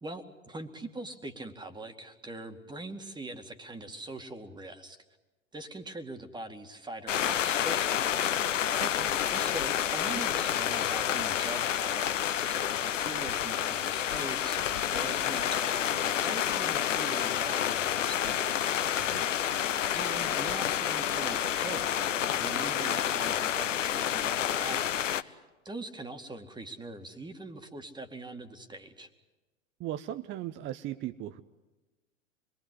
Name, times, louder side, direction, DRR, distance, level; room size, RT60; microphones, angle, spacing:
voice 1, 0.0-5.0 5.5-8.4 9.3-18.5 19.9-29.1, right 2 dB, 10° right, 7 dB, 2.2 m, -42 dB
sound 1, 7.1-25.2, left 10 dB, 75° left, 1.0 m, -29 dB
voice 2, 8.8-9.1 19.0-19.3 29.8-31.4, right 12 dB, 30° right, 11 dB, 0.8 m, -38 dB
26.0 x 22.0 x 8.2 m, 1.1 s
figure-of-eight pair, 90°, 38 cm